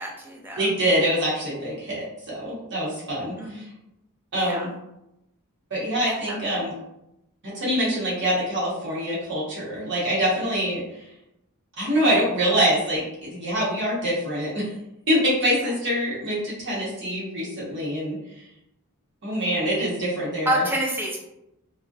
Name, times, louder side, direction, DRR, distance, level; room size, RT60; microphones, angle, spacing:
voice 1, 0.0-0.7 3.4-3.7 4.4-4.6 6.1-6.8 20.5-21.2, equal, 10° right, -1 dB, 0.4 m, -28 dB
voice 2, 0.6-3.7 4.3-4.7 5.7-6.7 7.4-11.1 11.8-14.7 15.1-18.2 19.2-20.6, equal, 55° right, -6 dB, 0.8 m, -25 dB
2.6 x 2.1 x 2.3 m, 0.87 s
head